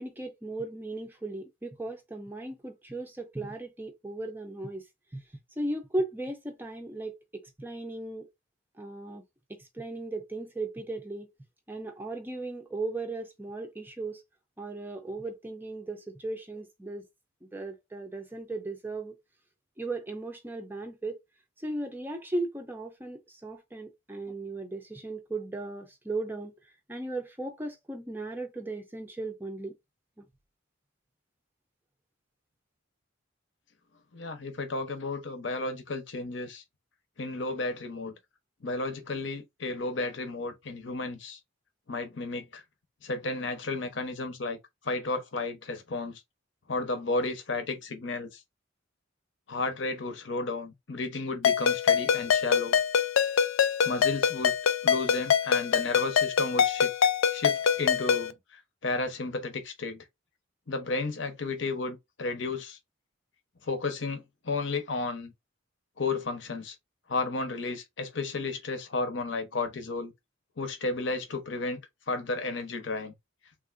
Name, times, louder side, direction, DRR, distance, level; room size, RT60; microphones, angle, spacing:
voice 1, 0.0-4.8 5.6-8.3 8.8-9.2 9.5-11.3 11.7-14.2 14.6-17.1 17.4-19.1 19.8-21.2 21.6-26.6 26.9-29.7 30.2-30.3, right 2 dB, 10° right, 0.5 m, -36 dB
voice 2, 34.1-36.6 37.2-38.1 38.6-41.4 41.9-42.6 43.0-44.6 44.8-46.2 46.7-48.4 49.5-52.8 53.8-54.5 54.8-56.9 57.3-60.0 60.7-62.8 63.6-65.3 66.0-66.8 67.1-70.1 70.6-71.8 72.1-73.1, left 3 dB, 65° left, 0.8 m, -33 dB
Ringtone, 51.4-58.3, left 7 dB, 85° left, 0.4 m, -25 dB
3.4 x 2.5 x 2.5 m
head